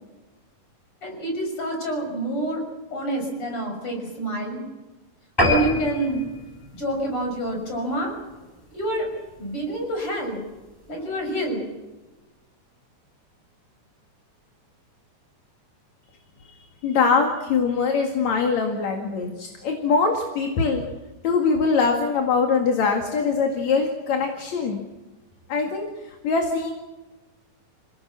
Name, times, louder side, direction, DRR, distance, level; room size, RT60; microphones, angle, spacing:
voice 1, 1.0-2.6 2.9-4.6 5.4-6.2 6.7-8.1 8.7-9.1 9.4-10.4 10.9-11.6, right 1 dB, 40° left, 2 dB, 7.1 m, -27 dB
sound 1, 5.4-8.1 8.6-8.8 9.2-9.3 9.6-9.7 10.0-10.1, left 1 dB, 5° left, 7.7 m, -26 dB
voice 2, 16.8-20.8 21.2-24.8 25.5-26.7, left 5 dB, 60° left, 3 dB, 3.2 m, -23 dB
28.0 x 18.0 x 7.4 m, 1.2 s
omnidirectional pair, 3.8 m